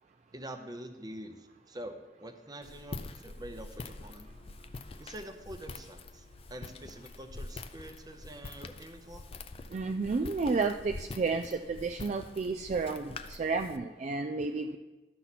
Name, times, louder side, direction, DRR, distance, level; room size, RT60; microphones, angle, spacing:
voice 1, 0.3-4.3 5.0-9.2, right 1 dB, 20° right, 6 dB, 0.7 m, -46 dB
Walk footsteps, 2.6-13.8, left 3 dB, 35° left, 0.4 m, -45 dB
voice 2, 9.7-14.8, right 4 dB, 40° right, 6 dB, 0.3 m, -31 dB
12.5 x 5.8 x 4.1 m, 1.2 s
head